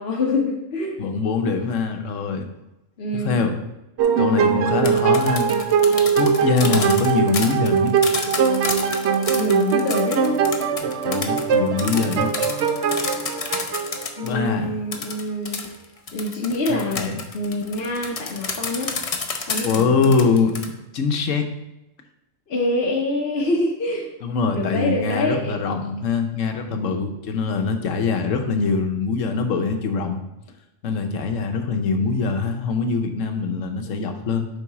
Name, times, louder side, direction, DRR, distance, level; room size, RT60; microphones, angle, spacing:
voice 1, 0.0-1.0 3.0-3.4 9.3-10.4 14.0-15.6 16.1-18.9 19.5-20.2 22.5-24.1 24.5-25.6 32.0-32.2, left 2 dB, 55° left, -3 dB, 1.1 m, -25 dB
voice 2, 1.0-2.5 3.1-3.5 4.2-5.5 6.2-8.0 10.8-12.3 14.2-14.8 16.7-17.2 19.6-20.6 20.9-21.5 24.2-30.2 30.8-34.5, left 4 dB, 80° left, 5 dB, 1.2 m, -23 dB
sound 1, 4.0-14.5, right 6 dB, 65° right, 0.8 m, -21 dB
sound 2, 4.7-14.3 14.9-20.7, left 4 dB, 40° left, 0.5 m, -30 dB
7.0 x 4.0 x 4.7 m, 0.94 s
omnidirectional pair, 1.3 m